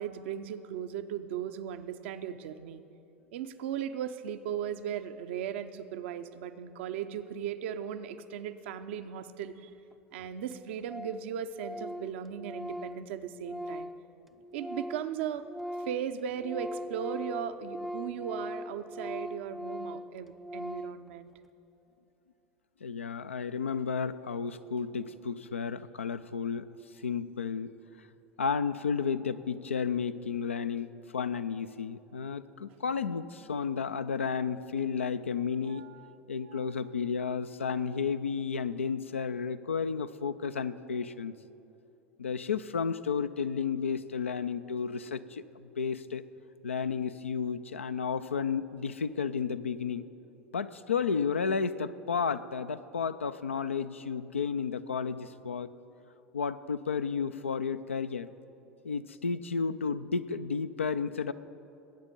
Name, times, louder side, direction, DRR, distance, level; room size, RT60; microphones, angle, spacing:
voice 1, 0.0-2.8 3.3-9.7 10.1-13.9 14.5-15.4 15.9-21.3 35.7-36.2 36.4-36.9, right 9 dB, 70° right, 11 dB, 0.6 m, -37 dB
Organ, 9.9-10.0 10.2-10.3 10.5-10.6 10.9-11.3 11.5-15.1 15.4-21.1, equal, ahead, 0.4 m, -40 dB
voice 2, 22.8-26.7 27.0-27.7 28.4-35.9 36.3-41.3 42.2-46.2 46.6-50.1 50.5-55.7 56.3-58.3 58.8-61.3, left 6 dB, 90° left, 12 dB, 0.4 m, -32 dB
20.0 x 8.9 x 5.3 m, 2.8 s
hypercardioid pair, 80°, 7 cm